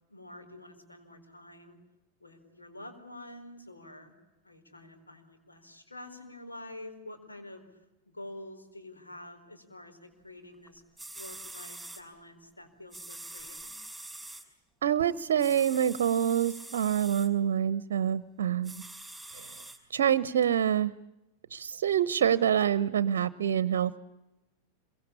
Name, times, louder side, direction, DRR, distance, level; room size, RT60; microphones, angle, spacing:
voice 1, 0.1-1.8 2.2-4.1 4.4-7.8 8.1-10.8 11.1-13.7, left 1 dB, 80° left, 5 dB, 4.7 m, -48 dB
sound 1, 10.7-10.8 11.0-12.0 12.9-14.4 15.4-17.3 18.6-19.8 20.4-20.5, right 2 dB, ahead, 5.6 m, -44 dB
voice 2, 14.8-18.8 19.3-19.5 19.9-20.9 21.5-24.0, right 9 dB, 60° right, 18 dB, 0.9 m, -26 dB
26.5 x 23.5 x 8.7 m, 0.95 s
figure-of-eight pair, 90°, 0 cm